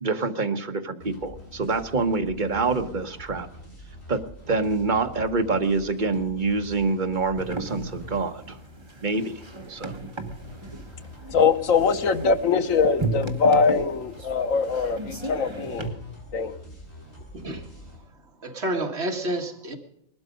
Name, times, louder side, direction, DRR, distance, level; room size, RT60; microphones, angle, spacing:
voice 1, 0.0-3.5 4.1-4.2 4.5-8.6 9.0-9.3 9.7-9.9, right 3 dB, 40° right, 7 dB, 1.3 m, -26 dB
sound 1, 1.0-18.0, left 1 dB, 55° left, 7.1 m, -45 dB
sound 2, 7.4-15.9, right 2 dB, 20° right, 1.3 m, -35 dB
voice 2, 11.3-15.9 16.3-16.5, left 5 dB, 80° left, 9 dB, 1.4 m, -22 dB
voice 3, 18.4-19.8, right 1 dB, 55° right, 4 dB, 2.1 m, -29 dB
20.0 x 12.5 x 5.2 m, 0.77 s
omnidirectional pair, 1.4 m